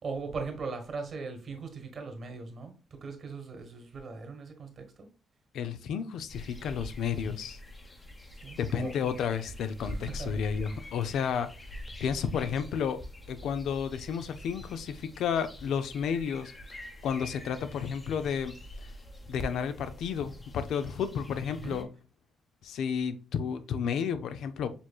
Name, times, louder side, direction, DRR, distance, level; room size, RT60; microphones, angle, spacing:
voice 1, 0.0-5.1 8.4-8.9 9.8-10.4 10.7-10.8 21.6-21.8, right 4 dB, 50° right, 1.3 m, -39 dB
voice 2, 5.5-7.6 8.6-11.5 12.0-13.0 13.3-16.5 17.0-18.9 19.3-21.9 22.6-24.7, left 7 dB, 75° left, 0.4 m, -32 dB
sound 1, 6.3-21.8, left 1 dB, 25° left, 0.9 m, -45 dB
6.8 x 3.0 x 2.3 m
cardioid pair, 90°, 0 cm